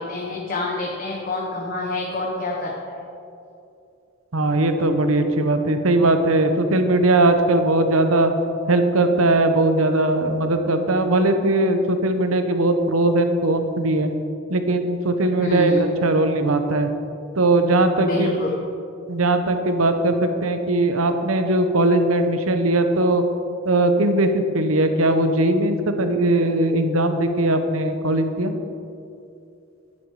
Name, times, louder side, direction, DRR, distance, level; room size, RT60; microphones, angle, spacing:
voice 1, 0.0-3.0 15.4-16.0 18.0-18.5, left 2 dB, 45° left, -2 dB, 1.2 m, -27 dB
voice 2, 4.3-8.3 8.7-14.2 14.5-16.9 17.4-18.4 19.1-23.2 23.6-28.5, right 2 dB, 85° right, 7 dB, 0.9 m, -19 dB
10.0 x 9.6 x 4.8 m, 2.6 s
head